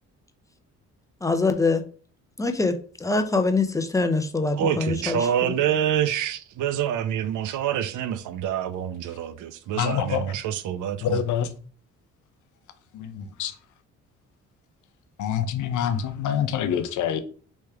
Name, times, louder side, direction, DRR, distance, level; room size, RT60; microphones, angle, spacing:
voice 1, 1.2-1.9 2.4-5.5, left 3 dB, 10° left, 0.6 m, -24 dB
voice 2, 4.6-11.2, right 10 dB, 80° right, 0.6 m, -26 dB
voice 3, 9.7-10.3 11.0-11.5 12.9-13.5 15.2-17.2, left 8 dB, 75° left, 0.7 m, -26 dB
3.2 x 3.2 x 4.7 m
cardioid pair, 90°, 30 cm